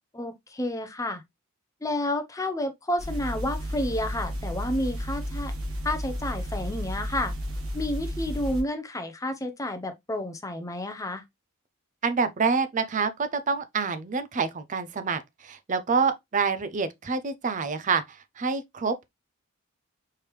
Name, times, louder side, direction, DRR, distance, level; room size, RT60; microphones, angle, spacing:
voice 1, 0.1-1.2 1.8-5.5 5.8-7.3 7.7-11.2, left 1 dB, 15° left, 0.6 m, -30 dB
sound 1, 3.0-8.6, equal, 75° right, 2.0 m, -32 dB
voice 2, 12.0-19.1, right 5 dB, 35° right, 0.5 m, -27 dB
4.5 x 3.4 x 3.1 m
head